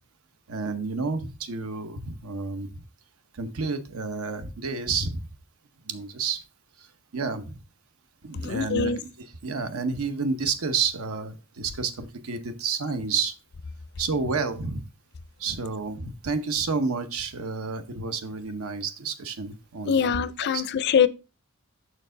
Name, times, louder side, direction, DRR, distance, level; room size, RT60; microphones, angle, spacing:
voice 1, 0.5-2.8 3.4-5.2 5.9-6.4 7.1-7.6 8.2-8.9 9.2-13.3 14.0-14.8 15.4-20.1 20.4-20.6, right 4 dB, 75° right, 0.8 m, -30 dB
voice 2, 8.4-9.0 19.9-21.1, left 7 dB, 50° left, 0.4 m, -23 dB
6.1 x 4.5 x 3.8 m
head